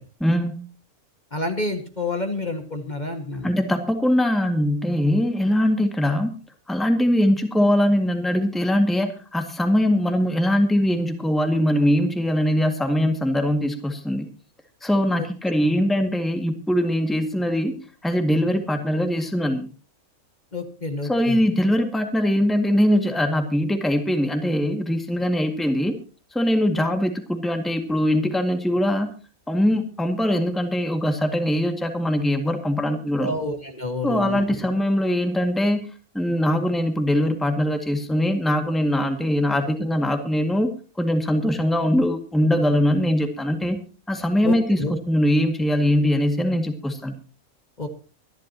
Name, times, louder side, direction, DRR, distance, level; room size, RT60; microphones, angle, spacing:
voice 1, 0.2-0.6 3.4-6.3 6.7-14.3 14.8-17.7 18.0-19.7 21.1-26.0 26.3-29.1 29.5-33.3 34.0-40.7 41.0-43.8 44.1-47.2, equal, ahead, 5 dB, 1.9 m, -22 dB
voice 2, 1.3-3.5 15.2-15.3 20.5-21.4 26.8-26.9 33.2-34.7 44.4-44.9 47.8-47.9, left 2 dB, 30° left, 4 dB, 1.9 m, -29 dB
25.0 x 11.5 x 2.9 m, 0.36 s
omnidirectional pair, 1.5 m